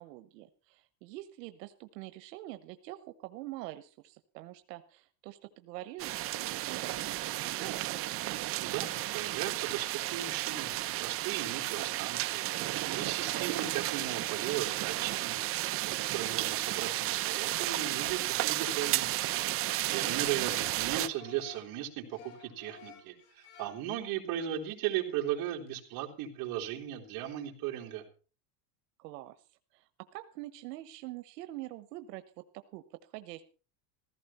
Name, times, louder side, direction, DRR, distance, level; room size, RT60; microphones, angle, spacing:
voice 1, 0.0-8.0 19.8-20.5 29.0-29.3 29.7-32.2 32.5-33.4, right 17 dB, 90° right, 11 dB, 1.2 m, -45 dB
sound 1, 6.0-21.1, right 16 dB, 30° right, 0.6 m, -33 dB
voice 2, 8.6-15.4 16.1-19.1 19.4-28.0, right 11 dB, 45° right, 0 dB, 3.6 m, -37 dB
sound 2, 20.2-21.7 22.1-24.0 24.4-24.8 25.0-25.1 25.4-25.7, left 6 dB, 60° left, 6.0 m, -54 dB
16.0 x 14.5 x 4.3 m, 0.37 s
cardioid pair, 165°, 48 cm